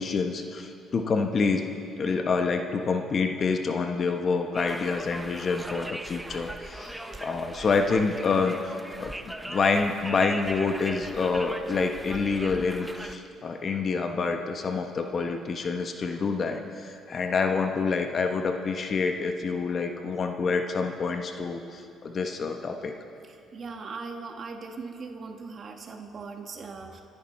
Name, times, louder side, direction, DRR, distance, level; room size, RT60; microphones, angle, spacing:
voice 1, 0.0-1.6 2.0-6.9 7.2-8.7 9.0-22.9, left 4 dB, 45° left, 5 dB, 1.1 m, -27 dB
Conversation, 4.5-13.2, right 1 dB, 5° right, 0.8 m, -39 dB
voice 2, 23.2-27.0, right 4 dB, 45° right, 4 dB, 1.3 m, -40 dB
25.5 x 10.5 x 4.3 m, 2.6 s
cardioid pair, 95°, 0 cm